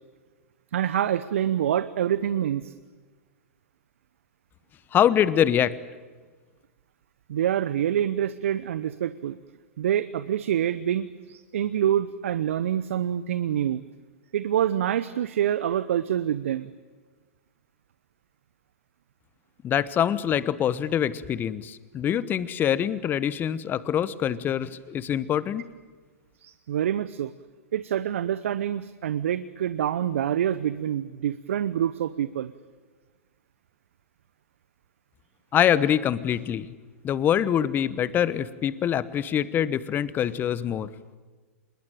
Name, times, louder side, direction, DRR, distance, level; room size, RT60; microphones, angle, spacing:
voice 1, 0.7-2.7 7.3-9.4 9.8-13.8 14.3-16.7 26.4-27.3 27.7-32.5, right 10 dB, 65° right, 15 dB, 0.9 m, -26 dB
voice 2, 4.9-5.8 19.6-25.7 35.5-36.7 37.0-40.9, left 9 dB, 25° left, 17 dB, 1.1 m, -24 dB
25.5 x 21.5 x 9.2 m, 1.4 s
figure-of-eight pair, 105°, 8 cm